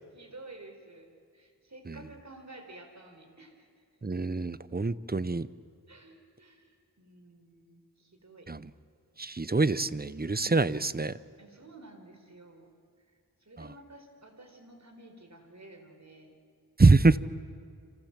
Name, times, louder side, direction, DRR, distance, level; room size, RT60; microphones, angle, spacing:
voice 1, 0.1-3.7 5.9-8.5 10.2-10.7 11.4-12.7 13.4-16.4, right 2 dB, 45° right, 5 dB, 4.5 m, -51 dB
voice 2, 4.0-5.5 8.5-8.6 9.2-11.1 16.8-17.2, right 3 dB, 25° right, 16 dB, 0.7 m, -24 dB
29.5 x 26.5 x 7.4 m, 2.3 s
wide cardioid pair, 75°, 37 cm